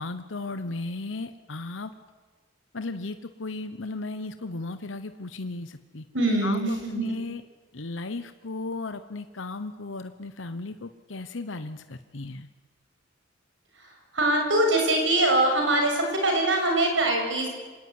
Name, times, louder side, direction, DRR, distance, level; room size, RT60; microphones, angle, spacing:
voice 1, 0.0-1.9 2.7-6.0 6.4-7.4 7.7-12.5, left 3 dB, 85° left, 10 dB, 1.0 m, -35 dB
voice 2, 6.1-7.2 13.7-17.5, right 1 dB, 80° right, 2 dB, 7.4 m, -23 dB
26.5 x 18.0 x 9.6 m, 1.4 s
head